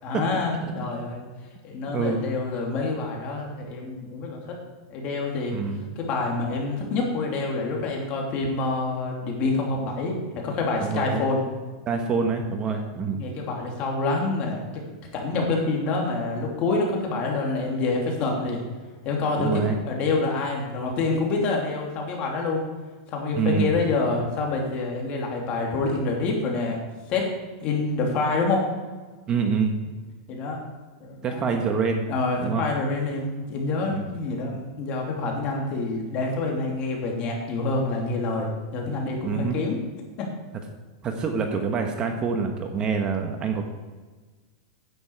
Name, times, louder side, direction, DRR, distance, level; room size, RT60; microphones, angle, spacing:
voice 1, 0.0-1.2 1.6-4.6 4.9-5.5 6.0-11.4 13.1-14.6 15.1-18.6 19.0-22.7 23.1-26.8 27.1-27.2 27.6-28.6 30.3-30.6 31.0-31.5 32.1-39.8 40.2-40.3, left 3 dB, 40° left, 0 dB, 2.9 m, -27 dB
voice 2, 5.5-5.8 10.8-11.3 11.9-13.2 19.4-19.8 23.3-23.8 29.3-29.8 31.2-32.0 32.4-32.6 33.9-34.2 39.2-39.6 41.0-43.6, right 5 dB, 25° right, 4 dB, 1.2 m, -26 dB
9.9 x 8.7 x 4.7 m, 1.3 s
supercardioid pair, 135°, 3 cm